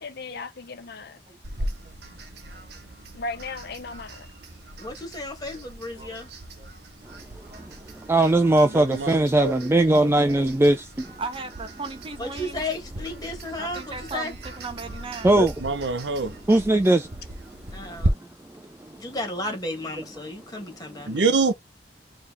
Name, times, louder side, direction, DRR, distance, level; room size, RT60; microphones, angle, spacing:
voice 1, 0.0-1.2 3.1-4.3, left 3 dB, 65° left, 0.9 m, -36 dB
voice 2, 1.3-1.7 5.6-5.7 6.0-6.2 6.6-6.7 7.1-7.2 7.5-7.9 9.6-10.7 11.2-12.6 13.6-15.3, right 3 dB, 30° right, 0.9 m, -38 dB
sound 1, 1.4-18.1, right 1 dB, 65° right, 1.3 m, -37 dB
voice 3, 4.8-6.3 12.2-14.3 17.7-18.2 19.0-21.3, left 1 dB, 20° left, 2.1 m, -34 dB
voice 4, 8.1-10.8 15.2-15.5 16.5-17.1, right 2 dB, 15° right, 0.4 m, -19 dB
voice 5, 8.7-9.5 15.3-16.4 21.0-21.5, right 4 dB, 85° right, 0.8 m, -25 dB
4.7 x 3.0 x 3.5 m
head